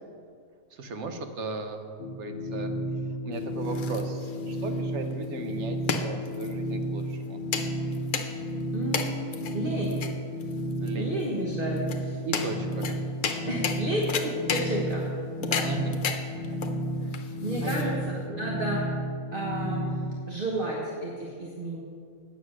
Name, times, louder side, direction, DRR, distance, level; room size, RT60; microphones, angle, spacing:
voice 1, 0.7-1.9 2.2-2.7 3.1-7.4 10.8-11.2 12.2-13.6 15.6-16.0 17.0-17.2 17.6-17.9, right 3 dB, 60° right, 6 dB, 1.1 m, -37 dB
sound 1, 2.0-20.2, equal, 40° left, 0.9 m, -32 dB
sound 2, 3.3-18.2, left 6 dB, 65° left, 1.1 m, -34 dB
voice 2, 8.7-10.0 10.9-12.2 13.5-15.1 15.4-15.7 17.4-18.9 19.3-19.9 20.3-21.8, right 1 dB, 40° right, -4 dB, 1.3 m, -32 dB
9.4 x 7.3 x 6.3 m, 2.2 s
omnidirectional pair, 1.5 m